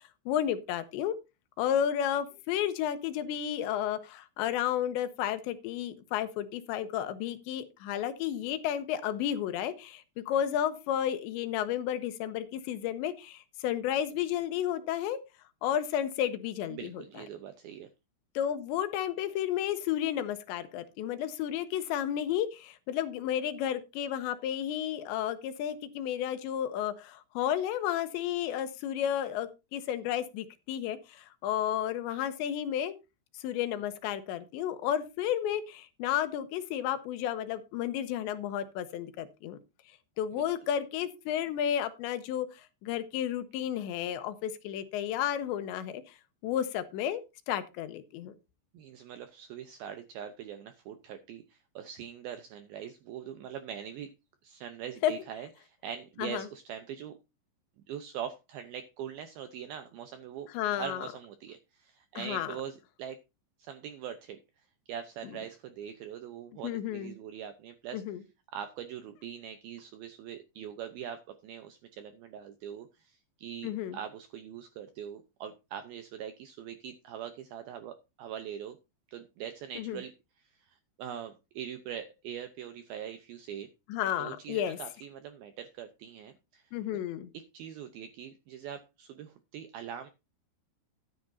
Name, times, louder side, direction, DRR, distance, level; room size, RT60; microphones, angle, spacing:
voice 1, 0.3-1.2 1.6-15.2 15.6-17.0 18.4-32.9 33.3-39.6 40.2-46.2 46.4-48.3 55.0-55.1 56.2-56.5 60.5-61.1 62.2-62.6 66.6-67.1 67.9-68.2 73.6-74.0 79.8-80.0 83.9-84.8 86.7-87.3, left 10 dB, 80° left, 11 dB, 3.0 m, -32 dB
voice 2, 16.7-17.9 40.3-40.4 48.7-54.1 54.4-57.2 57.9-60.5 60.8-63.2 63.6-68.0 68.5-78.8 79.1-83.7 84.2-87.0 87.3-90.1, right 9 dB, 80° right, 9 dB, 2.2 m, -42 dB
13.5 x 10.0 x 2.7 m, 0.25 s
omnidirectional pair, 5.3 m